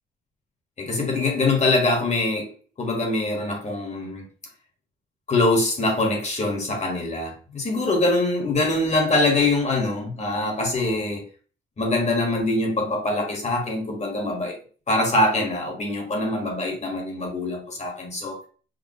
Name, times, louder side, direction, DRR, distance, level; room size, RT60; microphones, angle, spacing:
voice 1, 0.8-2.5 2.8-4.3 5.3-11.2 11.8-14.6 14.9-18.4, left 2 dB, 35° left, 1.7 m, -23 dB
5.1 x 2.8 x 3.1 m
cardioid pair, 90°, 20 cm